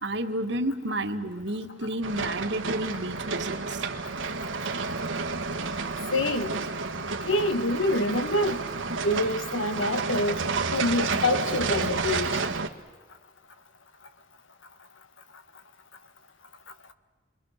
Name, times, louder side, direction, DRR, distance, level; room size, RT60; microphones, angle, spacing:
voice 1, 0.0-3.8, right 1 dB, 65° right, 1.6 m, -31 dB
sound 1, 2.0-12.7, right 4 dB, 85° right, 1.4 m, -30 dB
voice 2, 6.1-6.6 7.2-8.6 9.0-10.4 10.7-12.4, left 1 dB, 80° left, 1.5 m, -26 dB
29.0 x 22.5 x 6.5 m
head